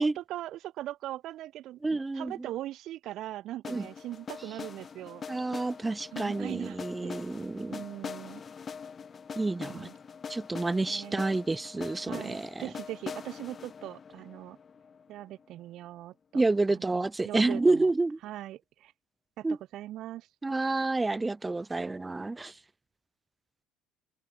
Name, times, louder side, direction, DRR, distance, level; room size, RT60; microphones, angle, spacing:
voice 1, 0.0-5.2 6.1-7.1 7.7-8.4 9.6-9.9 10.8-11.2 12.1-14.6 15.1-16.4 16.7-17.9 18.2-18.9 19.4-20.3, right 14 dB, 65° right, 0.4 m, -40 dB
voice 2, 1.8-2.5 3.7-3.9 5.3-7.8 9.4-9.9 10.3-12.6 16.3-18.2 19.4-19.6 20.4-22.5, right 3 dB, 15° right, 0.6 m, -29 dB
sound 1, 3.6-15.6, left 6 dB, 35° left, 1.0 m, -43 dB
open air
supercardioid pair, 80°, 0 cm